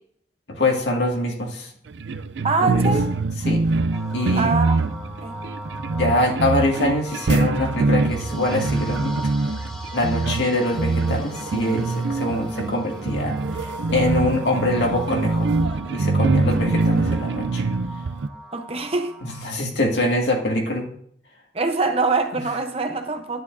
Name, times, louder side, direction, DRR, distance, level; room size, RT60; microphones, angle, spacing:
voice 1, 0.5-1.7 2.6-2.9 3.5-3.6 4.1-4.6 6.0-9.2 9.9-15.5 15.9-17.6 19.2-20.9 22.3-22.4, left 1 dB, 75° left, 0 dB, 2.0 m, -24 dB
sound 1, 1.9-18.3, right 3 dB, 80° right, 0.5 m, -24 dB
voice 2, 2.4-3.1 4.3-4.8 5.2-5.4 18.5-19.1 21.5-23.4, right 3 dB, 35° right, 6 dB, 0.8 m, -24 dB
sound 2, 3.9-19.5, right 1 dB, ahead, 1.0 m, -38 dB
10.5 x 9.7 x 2.6 m, 0.62 s
head